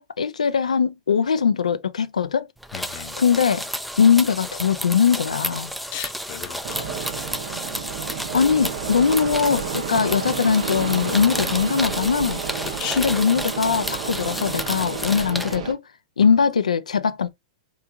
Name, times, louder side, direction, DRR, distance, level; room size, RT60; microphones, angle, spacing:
voice 1, 0.0-2.5 3.2-3.7 4.0-5.7 8.3-12.4 13.0-15.8 16.2-17.3, left 6 dB, 80° left, 0.4 m, -21 dB
sound 1, 2.6-15.6, equal, ahead, 0.4 m, -31 dB
voice 2, 2.7-3.2 5.9-7.0 12.8-13.1 16.2-16.4, left 10 dB, 45° left, 0.8 m, -35 dB
Fixed-wing aircraft airplane, 6.6-15.7, right 8 dB, 60° right, 0.7 m, -31 dB
3.3 x 3.1 x 2.3 m
hypercardioid pair, 105°, 4 cm